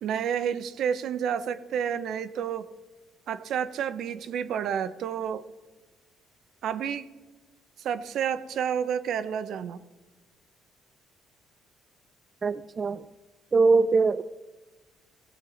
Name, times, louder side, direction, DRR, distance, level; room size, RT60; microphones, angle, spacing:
voice 1, 0.0-2.7 3.3-5.4 6.6-7.1 7.8-9.8, right 8 dB, 65° right, 12 dB, 0.7 m, -30 dB
voice 2, 12.4-13.0 13.5-14.2, right 4 dB, 35° right, 12 dB, 0.4 m, -22 dB
17.0 x 7.5 x 3.9 m, 1.2 s
cardioid pair, 100°, 0 cm